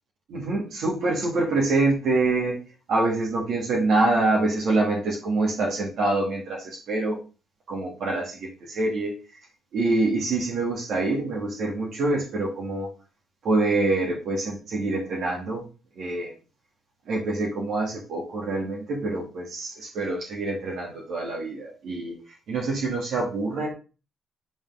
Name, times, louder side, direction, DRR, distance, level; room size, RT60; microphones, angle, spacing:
voice 1, 0.3-2.6 2.9-7.2 7.7-9.2 9.7-12.9 13.4-15.6 16.0-16.3 17.1-22.2 22.5-23.7, right 2 dB, 70° right, -2 dB, 2.0 m, -25 dB
8.6 x 3.7 x 3.6 m, 0.34 s
cardioid pair, 90°, 0 cm